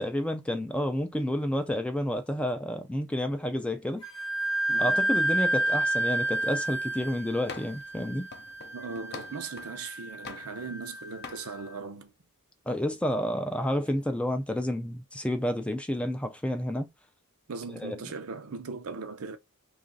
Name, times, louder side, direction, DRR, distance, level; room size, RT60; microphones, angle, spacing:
voice 1, 0.0-4.0 4.8-8.3 12.7-16.9 17.7-18.0, left 1 dB, 5° left, 0.4 m, -30 dB
Wind instrument woodwind instrument, 4.0-11.4, right 1 dB, 25° left, 0.9 m, -30 dB
voice 2, 4.7-5.1 8.7-12.1 17.5-19.4, right 4 dB, 75° right, 0.6 m, -39 dB
sound 1, 7.5-7.9 8.3-9.8 10.2-10.9 11.2-11.5, left 4 dB, 50° left, 0.6 m, -44 dB
3.0 x 2.4 x 3.9 m
head